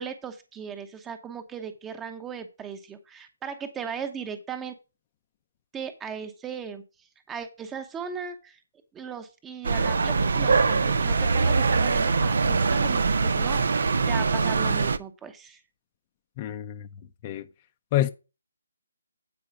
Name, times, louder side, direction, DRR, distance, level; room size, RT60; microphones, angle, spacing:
voice 1, 0.0-4.7 5.7-6.8 7.3-8.6 8.9-15.6, right 6 dB, 10° right, 0.9 m, -37 dB
sound 1, 9.6-15.0, right 4 dB, 55° right, 0.6 m, -23 dB
voice 2, 16.4-16.9 17.2-17.5 17.9-18.1, left 14 dB, 25° left, 0.6 m, -27 dB
8.6 x 4.8 x 5.9 m
figure-of-eight pair, 140°, 0 cm